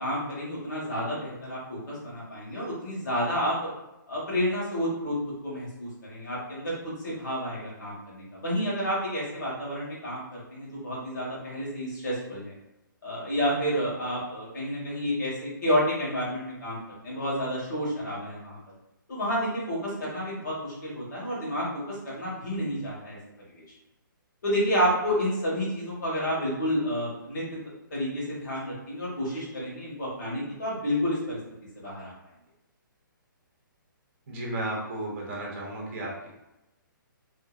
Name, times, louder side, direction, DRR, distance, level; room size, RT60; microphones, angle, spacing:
voice 1, 0.0-3.7 4.1-5.1 5.4-12.5 13.0-18.6 19.1-23.2 23.5-23.6 24.4-27.4 27.9-31.4 31.8-32.1, equal, 55° left, -6 dB, 1.4 m, -30 dB
voice 2, 34.3-36.3, right 1 dB, 35° right, -3 dB, 0.7 m, -34 dB
2.6 x 2.5 x 2.4 m, 0.93 s
hypercardioid pair, 170°, 11 cm